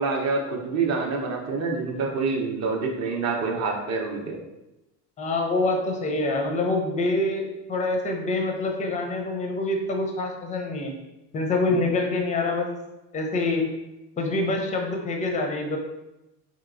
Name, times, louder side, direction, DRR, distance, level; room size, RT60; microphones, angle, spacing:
voice 1, 0.0-4.4, right 4 dB, 35° right, 1 dB, 0.6 m, -27 dB
voice 2, 5.2-10.9 11.3-12.7 13.1-13.7 14.2-15.8, left 2 dB, 15° left, 3 dB, 0.4 m, -26 dB
2.9 x 2.8 x 2.5 m, 0.95 s
hypercardioid pair, 70°, 48 cm